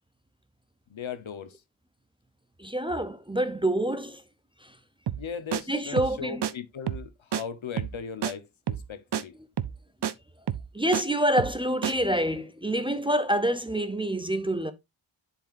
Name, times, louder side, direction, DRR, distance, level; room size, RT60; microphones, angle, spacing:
voice 1, 0.9-1.6 5.2-9.4, left 6 dB, 70° left, 1.1 m, -38 dB
voice 2, 2.6-4.2 4.6-4.8 5.7-6.4 10.7-14.7, right 1 dB, 10° right, 0.6 m, -27 dB
sound 1, 5.1-5.3 5.5-5.6 6.0-6.2 6.4-6.5 6.9-7.1 7.3-7.4 7.8-8.0 8.2-8.3 8.7-8.9 9.1-9.2 9.6-9.8 10.0-10.1 10.5-11.0 11.4-11.6 11.8-11.9, right 9 dB, 55° right, 0.6 m, -29 dB
10.5 x 4.6 x 2.6 m
wide cardioid pair, 130°, 48 cm